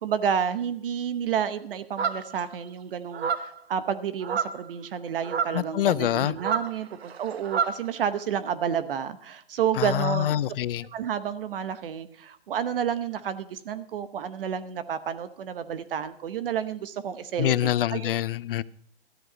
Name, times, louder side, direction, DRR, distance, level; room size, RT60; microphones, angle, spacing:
voice 1, 0.0-10.4 10.8-18.1, right 8 dB, 65° right, 1.0 m, -30 dB
sound 1, 2.0-2.4 3.1-3.6 4.2-4.7 5.2-5.6 6.4-7.8, right 6 dB, 90° right, 1.0 m, -29 dB
voice 2, 5.5-6.3 9.8-10.9 17.4-18.6, left 12 dB, 65° left, 0.5 m, -25 dB
13.0 x 7.9 x 6.2 m
hypercardioid pair, 150°, 30 cm